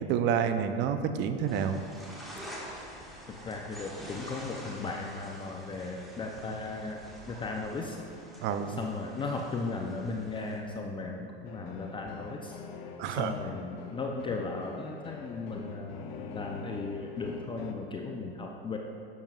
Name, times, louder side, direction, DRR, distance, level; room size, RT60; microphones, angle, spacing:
voice 1, 0.1-1.8 8.4-8.7 13.0-13.3, right 8 dB, 35° right, 9 dB, 0.5 m, -28 dB
sound 1, 1.5-10.6, equal, ahead, 1.6 m, -47 dB
voice 2, 3.3-7.0 7.3-8.1 8.7-12.6 13.1-18.8, left 3 dB, 15° left, 1 dB, 0.4 m, -36 dB
sound 2, 11.4-17.7, left 4 dB, 70° left, 0.8 m, -44 dB
11.0 x 7.0 x 2.4 m, 2.4 s
hypercardioid pair, 105°, 31 cm